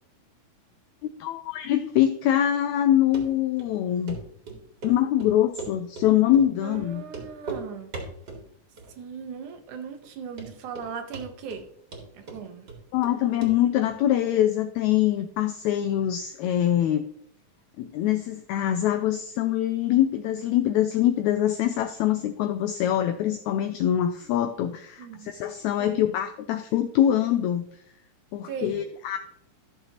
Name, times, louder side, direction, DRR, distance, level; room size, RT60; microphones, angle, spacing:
voice 1, 1.2-4.2 4.8-7.0 12.9-17.0 17.8-27.6 28.3-29.2, left 11 dB, 85° left, 9 dB, 1.6 m, -24 dB
Run, 3.1-3.2 3.6-3.7 4.1-4.2 4.5-6.1 6.3-6.5 6.7-6.8 7.1-7.6 7.9-8.4 8.8-9.2 9.5-9.6 10.0-10.1 10.4-10.9 11.1-11.6 11.9-13.1 13.4-13.5 13.8-13.9, right 4 dB, 35° right, 2.3 m, -38 dB
voice 2, 6.6-7.9 9.0-11.6 12.2-12.7 24.2-24.3 25.0-25.3 25.8-26.0 28.4-28.8, right 6 dB, 70° right, 6 dB, 2.2 m, -38 dB
14.0 x 6.8 x 2.9 m, 0.72 s
omnidirectional pair, 3.9 m